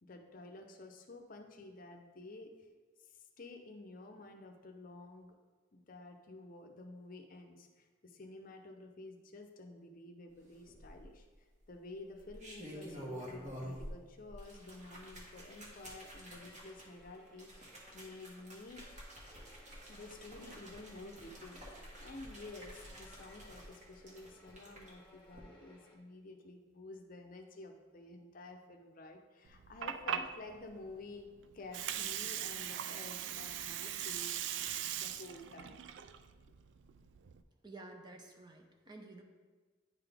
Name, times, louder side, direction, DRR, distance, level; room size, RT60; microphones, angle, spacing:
voice 1, 0.0-2.7 3.0-5.4 5.7-11.3 11.7-18.8 19.9-31.3 31.5-34.6 35.0-35.9, left 2 dB, 45° left, 4 dB, 0.6 m, -51 dB
sound 1, 10.7-11.3 12.1-14.0 14.3-24.9 25.3-25.4, equal, 40° right, 1.4 m, -49 dB
sound 2, 15.8-25.9, left 1 dB, 5° left, 1.6 m, -62 dB
Water, 29.5-37.4, right 10 dB, 65° right, 0.3 m, -40 dB
voice 2, 37.6-39.2, right 2 dB, 20° right, 3 dB, 0.6 m, -51 dB
9.6 x 3.9 x 3.4 m, 1.4 s
head